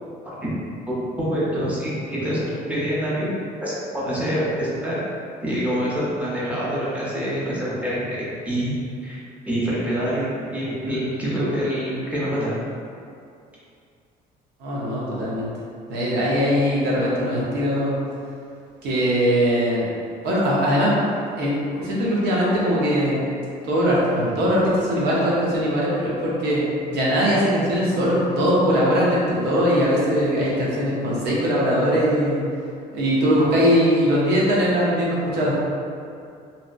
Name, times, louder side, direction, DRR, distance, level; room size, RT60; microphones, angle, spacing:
voice 1, 0.9-5.0 5.4-8.7 9.0-9.2 9.5-12.5, equal, 10° right, -8 dB, 0.7 m, -26 dB
voice 2, 14.6-15.5 15.9-18.0 18.8-19.9 20.2-20.9 21.3-23.2 23.7-26.6 26.9-32.4 32.9-35.6, equal, 80° right, -6 dB, 0.7 m, -21 dB
2.7 x 2.1 x 2.4 m, 2.4 s
cardioid pair, 110°, 17 cm